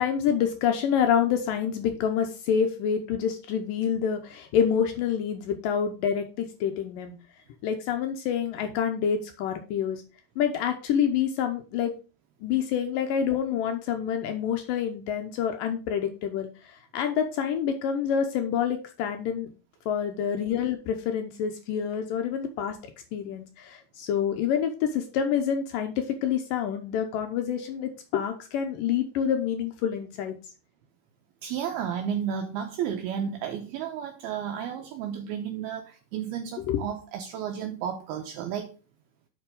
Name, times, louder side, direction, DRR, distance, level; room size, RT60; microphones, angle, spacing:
voice 1, 0.0-7.1 7.6-10.0 10.4-11.9 12.4-19.5 19.9-22.8 23.1-30.4 36.7-36.8, left 8 dB, 80° left, 5 dB, 2.0 m, -27 dB
voice 2, 31.4-38.7, right 8 dB, 75° right, 4 dB, 2.5 m, -32 dB
7.2 x 5.6 x 5.2 m, 0.35 s
omnidirectional pair, 4.8 m